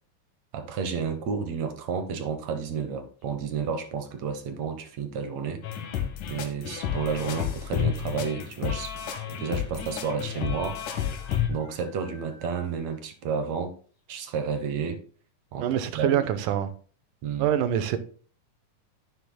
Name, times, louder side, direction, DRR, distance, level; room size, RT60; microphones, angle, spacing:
voice 1, 0.5-5.6 6.3-10.8 11.5-13.7 14.1-15.0 15.5-15.7 15.9-16.2 17.2-17.5, right 6 dB, 65° right, 2.0 m, -31 dB
sound 1, 3.2-3.7 5.5-5.9 6.1-6.2 6.5-7.0 7.8-7.9 8.1-8.2 9.7-9.8 10.7-13.0 13.4-13.5 14.0-14.1 14.5-14.6, left 2 dB, 40° left, 6.0 m, -54 dB
sound 2, 5.6-11.5, left 9 dB, 80° left, 2.7 m, -31 dB
voice 2, 15.6-16.7 17.4-18.0, right 10 dB, 90° right, 2.4 m, -25 dB
10.0 x 9.9 x 2.2 m
omnidirectional pair, 3.6 m